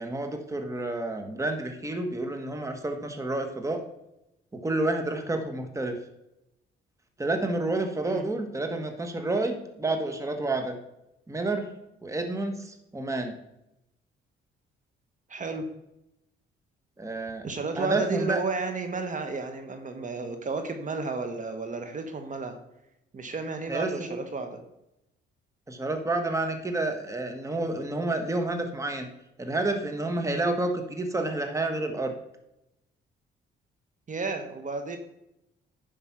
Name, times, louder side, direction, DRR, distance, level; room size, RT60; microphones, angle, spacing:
voice 1, 0.0-3.8 4.5-6.0 7.2-10.7 11.3-11.7 12.0-13.4 17.0-17.5 17.8-18.4 23.7-24.2 25.7-29.1 29.4-32.1, right 2 dB, 15° right, 6 dB, 1.4 m, -29 dB
voice 2, 15.3-15.7 17.4-22.6 23.1-24.6 34.1-35.0, right 4 dB, 40° right, 7 dB, 1.4 m, -32 dB
10.0 x 5.4 x 5.8 m, 0.87 s
cardioid pair, 90°, 20 cm